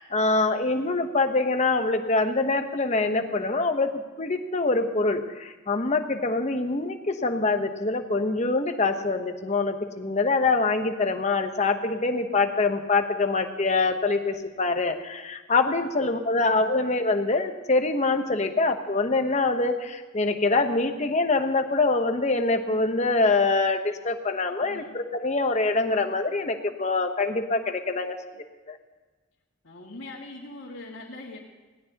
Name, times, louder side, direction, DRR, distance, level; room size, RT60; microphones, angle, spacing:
voice 1, 0.0-28.8, left 3 dB, 35° left, 6 dB, 1.0 m, -25 dB
voice 2, 0.6-1.0 16.0-16.7 24.6-25.0 29.6-31.4, left 2 dB, 85° left, -6 dB, 2.0 m, -43 dB
19.5 x 17.0 x 2.9 m, 1.3 s
head